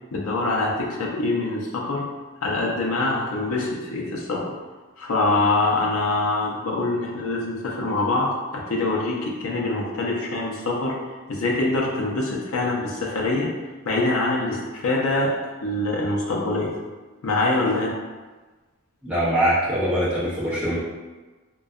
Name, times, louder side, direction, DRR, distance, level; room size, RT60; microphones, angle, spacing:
voice 1, 0.1-2.1 2.4-4.4 5.0-10.9 11.3-13.5 13.8-15.3 15.6-16.7 17.2-17.9, left 2 dB, 65° left, -3 dB, 0.5 m, -24 dB
voice 2, 19.0-20.8, equal, 5° right, -9 dB, 0.6 m, -22 dB
2.6 x 2.2 x 2.3 m, 1.3 s
head